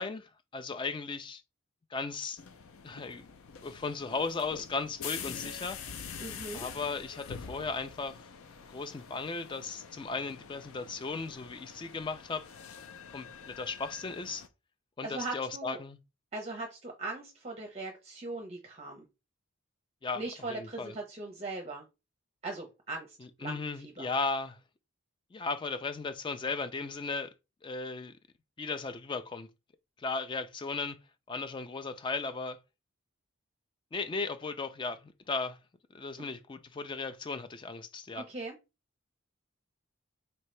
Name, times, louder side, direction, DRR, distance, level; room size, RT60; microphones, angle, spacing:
voice 1, 0.0-1.4 1.9-2.4 2.8-3.2 3.6-5.8 6.5-8.2 8.7-12.5 13.1-14.5 15.0-16.0 20.0-20.2 20.5-20.9 23.2-24.6 25.3-27.3 27.6-28.1 28.6-29.5 30.0-31.0 31.3-32.6 33.9-35.6 35.9-38.3, left 4 dB, 20° left, 0.3 m, -36 dB
sound 1, 2.4-14.5, left 6 dB, 75° left, 0.5 m, -46 dB
voice 2, 6.2-6.6 15.0-15.8 16.3-19.0 20.2-21.8 22.4-23.6 23.8-24.1 38.1-38.5, right 2 dB, 30° right, 0.6 m, -39 dB
4.3 x 2.8 x 3.2 m
head